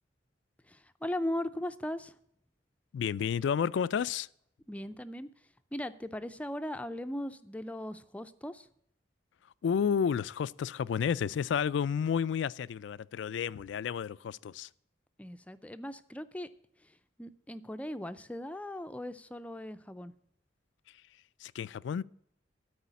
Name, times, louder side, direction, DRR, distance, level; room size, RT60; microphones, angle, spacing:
voice 1, 0.7-2.1 4.7-5.3 5.7-8.7 15.2-16.5 16.8-16.9 17.2-20.1, left 1 dB, 10° left, 0.4 m, -38 dB
voice 2, 2.9-4.3 9.6-14.7 21.4-22.0, left 7 dB, 70° left, 0.3 m, -31 dB
12.5 x 4.9 x 8.1 m
head